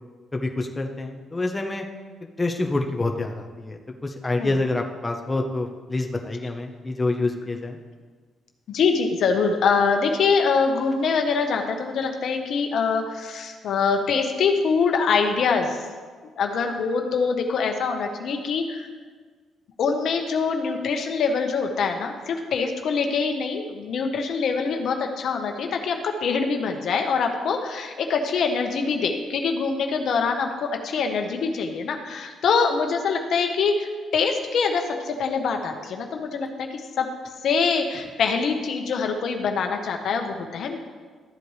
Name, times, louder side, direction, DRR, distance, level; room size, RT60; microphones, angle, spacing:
voice 1, 0.3-1.8 2.4-7.8, left 2 dB, 20° left, 2 dB, 0.9 m, -27 dB
voice 2, 8.7-15.8 16.4-18.9 19.8-37.1 37.4-40.8, left 5 dB, 65° left, 4 dB, 1.1 m, -24 dB
13.5 x 7.8 x 3.2 m, 1.5 s
cardioid pair, 90°, 0 cm